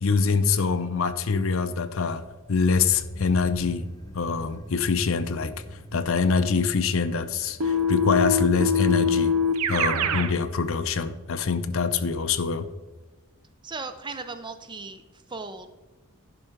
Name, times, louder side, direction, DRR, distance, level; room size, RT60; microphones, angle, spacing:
voice 1, 0.0-2.2 2.5-3.9 4.1-5.5 5.9-9.3 9.7-12.7, left 5 dB, 60° left, 11 dB, 0.6 m, -24 dB
sound 1, 2.2-13.2 13.5-13.6, equal, 15° left, 0.7 m, -44 dB
Keyboard (musical), 7.6-10.3, left 3 dB, 85° right, 0.7 m, -23 dB
voice 2, 13.6-15.0 15.3-15.7, right 4 dB, 20° right, 9 dB, 0.5 m, -37 dB
11.0 x 5.6 x 4.6 m, 1.2 s
head